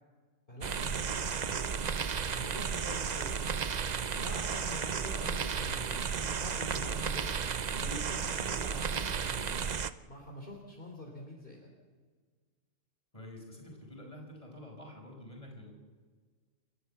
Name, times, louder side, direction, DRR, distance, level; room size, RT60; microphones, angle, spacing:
voice 1, 0.5-1.8 2.3-3.9 4.1-7.3 7.8-9.7 10.1-11.7, left 1 dB, 45° left, 0 dB, 3.5 m, -46 dB
sound 1, 0.6-9.9, right 6 dB, 45° right, 0.7 m, -33 dB
voice 2, 13.1-15.7, left 1 dB, 25° left, 2 dB, 5.6 m, -48 dB
29.0 x 13.5 x 7.1 m, 1.5 s
omnidirectional pair, 1.3 m